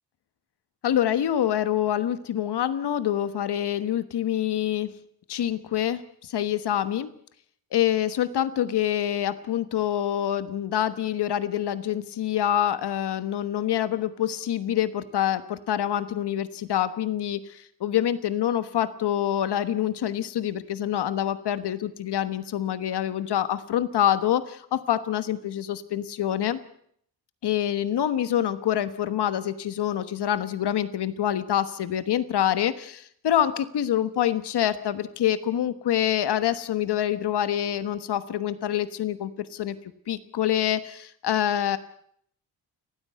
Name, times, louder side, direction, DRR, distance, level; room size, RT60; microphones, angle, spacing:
voice 1, 0.8-4.9 5.3-7.1 7.7-26.6 27.4-39.8 40.1-41.8, left 11 dB, 75° left, 13 dB, 1.3 m, -26 dB
29.5 x 10.0 x 9.5 m, 0.66 s
cardioid pair, 90°, 40 cm